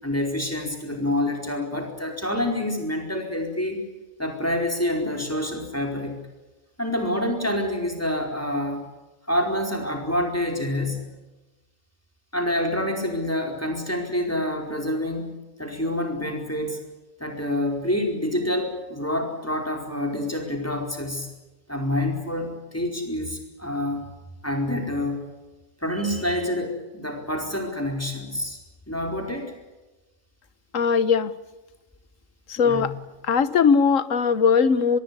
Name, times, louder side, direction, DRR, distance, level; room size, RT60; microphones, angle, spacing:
voice 1, 0.0-3.8 4.2-6.2 6.8-8.9 9.2-11.1 12.3-15.3 15.6-16.8 17.2-21.3 21.7-24.1 24.4-25.2 25.8-28.6 28.9-29.6 32.6-32.9, left 1 dB, 10° left, 2 dB, 4.6 m, -27 dB
voice 2, 30.7-31.3 32.5-32.9 33.2-35.0, left 6 dB, 75° left, 14 dB, 1.5 m, -20 dB
24.5 x 22.0 x 8.4 m, 1.1 s
omnidirectional pair, 1.4 m